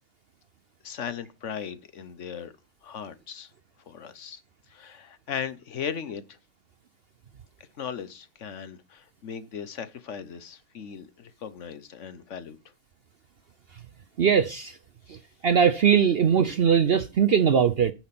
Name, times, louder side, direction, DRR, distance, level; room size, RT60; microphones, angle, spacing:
voice 1, 0.8-2.5 2.8-3.5 3.9-4.4 4.7-6.4 7.8-12.6, left 7 dB, 60° left, 1.2 m, -37 dB
voice 2, 14.2-14.8 15.1-15.2 15.4-17.9, right 7 dB, 55° right, 0.7 m, -20 dB
9.3 x 5.8 x 6.0 m
omnidirectional pair, 1.6 m